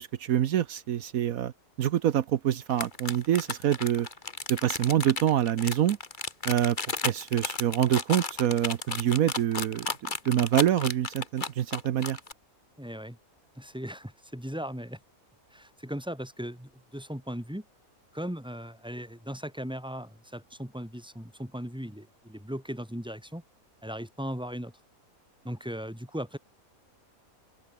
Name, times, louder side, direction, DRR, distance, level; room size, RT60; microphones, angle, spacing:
voice 1, 0.0-1.5 1.8-4.1 4.5-6.0 6.4-6.8 7.0-12.2, right 11 dB, 75° right, 1.2 m, -26 dB
sound 1, 2.7-12.3, left 4 dB, 35° left, 1.9 m, -33 dB
voice 2, 12.8-13.2 13.6-15.0 15.5-17.6 18.1-23.4 23.8-24.7 25.4-26.4, equal, 5° right, 4.1 m, -38 dB
open air
omnidirectional pair, 1.5 m